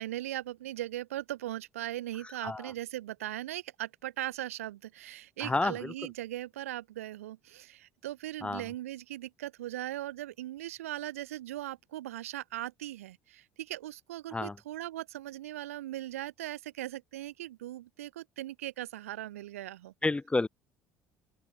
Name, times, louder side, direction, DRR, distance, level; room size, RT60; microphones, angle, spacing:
voice 1, 0.0-19.9, right 14 dB, 75° right, 1.6 m, -39 dB
voice 2, 2.2-2.7 5.4-5.9 8.4-8.6 14.3-14.6 20.0-20.5, left 2 dB, 15° left, 1.4 m, -30 dB
open air
figure-of-eight pair, 60°, 8 cm